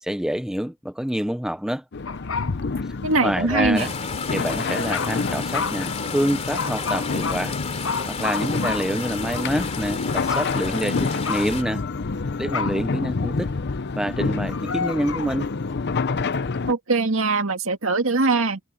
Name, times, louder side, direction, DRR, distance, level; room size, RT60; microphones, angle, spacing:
voice 1, 0.0-1.8 3.2-3.9 4.3-7.6 8.1-11.8 12.4-13.5 14.0-15.5, equal, 5° right, 0.5 m, -27 dB
sound 1, 1.9-16.7, left 4 dB, 50° left, 0.7 m, -28 dB
sound 2, 2.1-2.6 3.2-3.3 4.9-5.2 5.5-5.8 6.5-7.4 7.8-9.5 10.3-10.6 11.2-11.7 12.5-12.8 14.4-15.3, left 5 dB, 70° left, 5.1 m, -30 dB
voice 2, 3.0-3.9 16.7-18.6, right 3 dB, 65° right, 2.0 m, -22 dB
sound 3, 3.8-11.6, left 5 dB, 30° left, 3.1 m, -33 dB
head